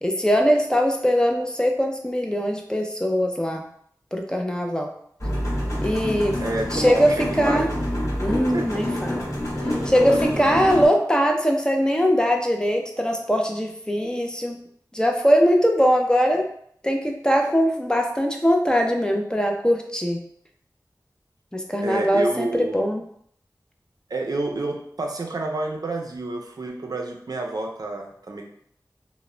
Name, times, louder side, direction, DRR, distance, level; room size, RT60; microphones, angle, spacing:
voice 1, 0.0-3.6 4.1-4.9 5.8-6.4 6.7-7.7 8.2-9.2 9.8-14.6 14.9-16.4 16.8-20.2 21.5-23.0, equal, 10° left, 2 dB, 0.4 m, -21 dB
sound 1, 5.2-10.9, equal, 45° left, 1.1 m, -27 dB
voice 2, 6.4-7.6 8.5-8.7 10.0-10.6 21.8-22.9 24.1-28.4, right 2 dB, 65° right, 1 dB, 0.4 m, -29 dB
2.1 x 2.0 x 3.6 m, 0.66 s
wide cardioid pair, 60°, 7 cm